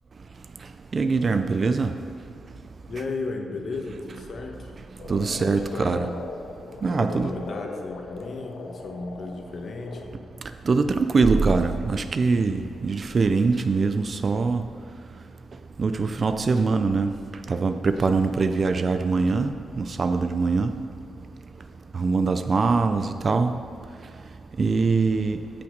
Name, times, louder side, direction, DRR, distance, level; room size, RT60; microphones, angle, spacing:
voice 1, 0.9-1.9 5.1-6.1 6.8-7.3 10.7-14.6 15.8-17.1 17.5-19.5 19.8-20.7 21.9-23.5 24.6-25.4, right 4 dB, 35° right, 9 dB, 0.4 m, -23 dB
voice 2, 2.9-4.7 5.4-6.1 6.9-10.1, left 3 dB, 45° left, 3 dB, 1.1 m, -34 dB
Frog, 5.0-10.1, left 4 dB, 70° left, 0.9 m, -39 dB
14.5 x 5.8 x 5.1 m, 2.5 s
wide cardioid pair, 145°, 0 cm